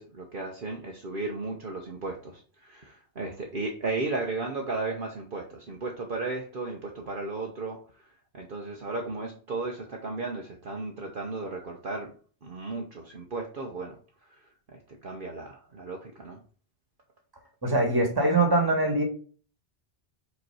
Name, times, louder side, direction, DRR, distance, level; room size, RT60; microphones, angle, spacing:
voice 1, 0.0-12.1 12.4-14.0 14.3-16.4, right 3 dB, 50° right, 1 dB, 1.1 m, -35 dB
voice 2, 17.6-19.0, right 2 dB, 20° right, 3 dB, 1.7 m, -23 dB
5.1 x 4.6 x 4.8 m, 0.40 s
omnidirectional pair, 1.2 m